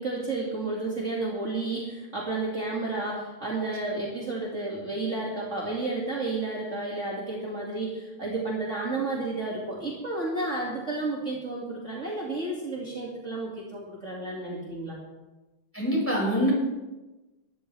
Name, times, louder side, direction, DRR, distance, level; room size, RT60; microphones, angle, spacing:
voice 1, 0.0-15.0, right 2 dB, 35° right, -4 dB, 2.6 m, -31 dB
voice 2, 15.7-16.5, equal, 5° left, -3 dB, 5.5 m, -24 dB
20.5 x 14.0 x 3.3 m, 1.1 s
omnidirectional pair, 2.3 m